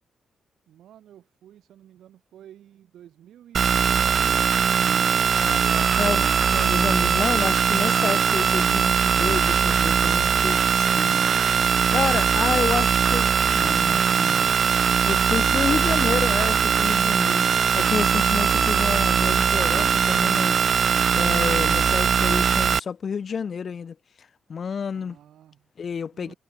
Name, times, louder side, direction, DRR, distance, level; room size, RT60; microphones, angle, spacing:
voice 1, 0.7-6.3 24.9-25.7 26.1-26.4, right 11 dB, 85° right, 4.0 m, -49 dB
sound 1, 3.5-22.8, right 7 dB, 45° right, 0.8 m, -20 dB
voice 2, 5.4-11.2 11.9-13.3 13.5-14.6 15.0-17.4 17.7-23.9 24.5-25.2 25.8-26.3, left 6 dB, 40° left, 1.3 m, -30 dB
wide cardioid pair, 150°, 0 cm